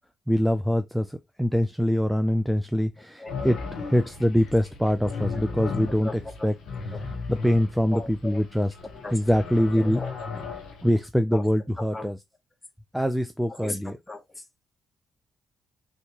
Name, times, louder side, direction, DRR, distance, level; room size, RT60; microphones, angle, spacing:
voice 1, 0.3-3.6 3.9-6.1 6.4-6.5 7.3-8.7 9.1-10.0 10.8-12.2 12.9-13.9, equal, ahead, 0.4 m, -24 dB
sound 1, 3.3-11.0, left 4 dB, 75° left, 0.7 m, -36 dB
voice 2, 5.3-5.7 6.0-6.5 6.9-7.0 7.9-8.4 9.0-9.2 9.7-10.3 11.3-11.5 11.8-12.1 13.5-14.4, left 2 dB, 15° left, 1.0 m, -38 dB
3.3 x 2.8 x 3.0 m
supercardioid pair, 65°, 0 cm